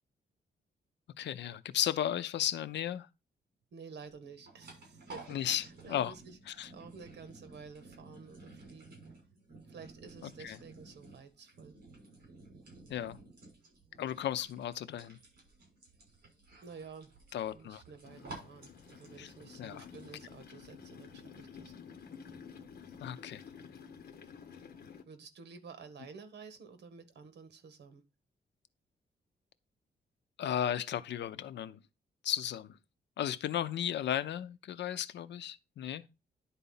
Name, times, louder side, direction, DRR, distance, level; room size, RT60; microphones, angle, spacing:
voice 1, 1.2-3.1 5.3-6.1 6.5-6.7 10.2-10.6 12.9-13.2 14.0-15.2 17.3-17.8 19.2-19.3 19.6-19.8 23.0-23.4 30.4-31.8 32.2-32.8 33.2-36.0, left 10 dB, 90° left, 0.7 m, -35 dB
voice 2, 3.7-9.0 9.6-11.8 16.6-21.7 24.4-24.5 25.1-28.0, right 5 dB, 75° right, 1.6 m, -51 dB
sound 1, 4.0-20.2, right 3 dB, 60° right, 6.3 m, -54 dB
sound 2, 18.0-25.0, left 6 dB, 60° left, 1.2 m, -51 dB
10.5 x 4.2 x 5.6 m
wide cardioid pair, 155°, 18 cm